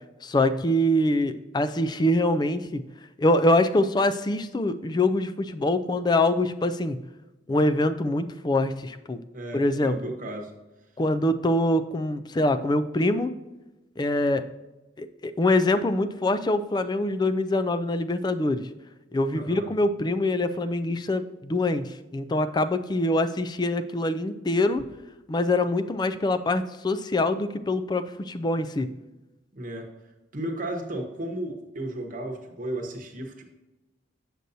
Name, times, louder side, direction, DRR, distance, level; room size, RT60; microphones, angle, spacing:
voice 1, 0.2-2.8 3.2-7.0 7.5-9.2 9.5-10.0 11.0-13.3 14.0-14.4 15.0-18.7 19.1-24.8 25.3-28.9, left 1 dB, 20° left, 10 dB, 0.3 m, -24 dB
voice 2, 9.3-10.5 19.3-19.7 29.5-29.9 30.3-33.4, right 1 dB, 45° right, 2 dB, 1.1 m, -34 dB
7.6 x 6.7 x 2.7 m, 1.1 s
head